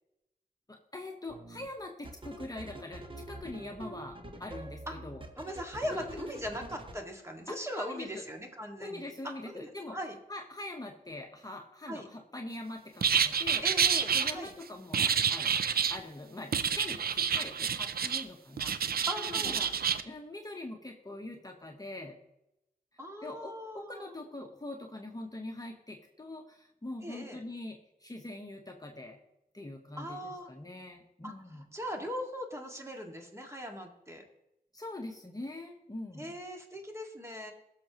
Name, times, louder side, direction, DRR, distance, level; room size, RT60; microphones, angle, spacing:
voice 1, 0.7-5.2 5.9-6.3 7.5-8.2 8.8-10.0 10.3-13.6 14.1-15.5 15.9-19.7 20.0-22.2 23.2-29.2 29.5-31.7 34.7-36.3, left 2 dB, 25° left, 2 dB, 1.1 m, -43 dB
sound 1, 1.3-1.7 2.0-7.0, right 2 dB, 35° right, 1.4 m, -45 dB
voice 2, 5.4-10.2 11.9-12.1 13.6-14.5 19.1-19.6 23.0-24.1 27.0-27.4 30.0-30.5 31.2-31.3 31.7-34.2 36.1-37.5, equal, 20° right, 2 dB, 1.9 m, -40 dB
sound 2, 13.0-14.3 14.9-16.0 16.5-18.2 18.6-20.0, right 7 dB, 90° right, 0.5 m, -28 dB
17.0 x 6.7 x 3.0 m, 0.89 s
wide cardioid pair, 60°, 15 cm